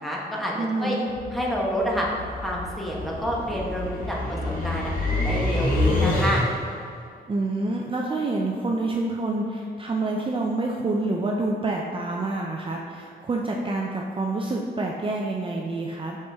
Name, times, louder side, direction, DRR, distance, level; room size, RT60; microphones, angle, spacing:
voice 1, 0.0-0.5 0.8-1.0 1.3-2.1 2.4-4.4 4.6-4.9 5.2-6.4, equal, ahead, -4 dB, 1.2 m, -28 dB
voice 2, 0.6-1.1 7.3-16.2, right 2 dB, 30° right, -1 dB, 0.5 m, -27 dB
sound 1, 1.1-6.8, left 2 dB, 55° left, 1.5 m, -27 dB
5.8 x 5.7 x 3.5 m, 2.3 s
cardioid pair, 105°, 17 cm